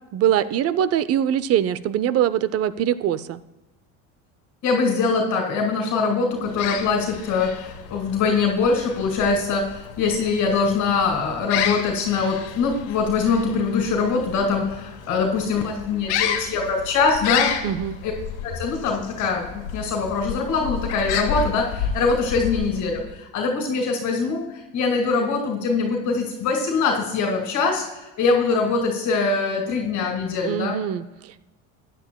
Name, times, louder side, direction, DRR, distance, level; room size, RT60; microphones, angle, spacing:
voice 1, 0.1-3.4 17.6-18.0 30.4-31.4, right 10 dB, 45° right, 16 dB, 0.6 m, -23 dB
voice 2, 4.6-17.5 18.0-18.1 18.4-24.4 24.7-27.8 28.2-30.8, left 4 dB, 50° left, 1 dB, 2.0 m, -23 dB
sound 1, 6.4-23.1, left 8 dB, 85° left, 1.4 m, -31 dB
15.0 x 10.0 x 2.2 m, 1.0 s
supercardioid pair, 110°, 35 cm